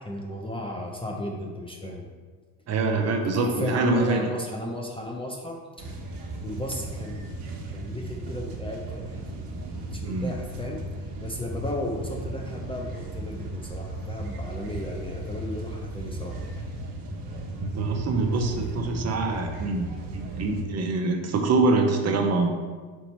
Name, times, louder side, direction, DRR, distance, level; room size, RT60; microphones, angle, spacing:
voice 1, 0.0-2.1 3.3-5.6 6.4-7.3 7.7-10.8 11.2-16.4 17.3-17.5, left 1 dB, 15° left, 0 dB, 0.5 m, -34 dB
voice 2, 2.7-4.3 10.0-10.3 17.6-22.5, right 3 dB, 40° right, 4 dB, 0.7 m, -25 dB
sound 1, 5.8-20.6, right 1 dB, 55° right, 1.3 m, -36 dB
4.6 x 4.1 x 5.4 m, 1.5 s
cardioid pair, 125°, 42 cm